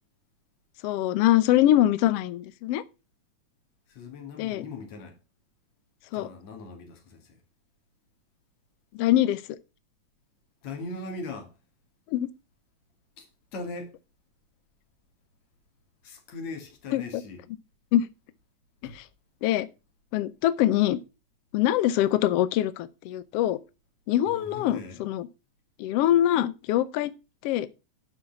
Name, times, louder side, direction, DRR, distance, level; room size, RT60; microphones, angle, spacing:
voice 1, 0.8-2.8 4.4-4.6 6.1-6.3 9.0-9.4 12.1-12.3 16.9-17.2 17.9-18.1 18.9-19.0 19.4-19.7 20.1-21.0 21.5-23.6 24.1-25.3 25.8-27.1 27.4-27.7, left 13 dB, 85° left, 1.3 m, -23 dB
voice 2, 3.9-5.2 6.1-7.4 10.6-11.5 13.2-13.9 16.0-17.4 18.8-19.0 24.3-25.1, left 3 dB, 60° left, 3.3 m, -40 dB
12.0 x 5.7 x 5.8 m
omnidirectional pair, 3.7 m